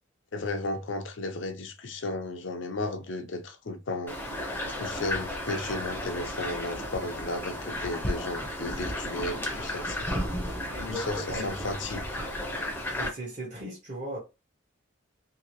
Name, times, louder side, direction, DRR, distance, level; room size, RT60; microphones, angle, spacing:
voice 1, 0.3-4.2 4.8-10.2 10.9-12.1, left 2 dB, 65° left, 0.6 m, -34 dB
sound 1, 4.1-13.1, left 1 dB, 10° left, 0.6 m, -33 dB
voice 2, 10.7-11.7 12.9-14.2, equal, 35° right, 0.9 m, -37 dB
2.9 x 2.8 x 3.0 m
head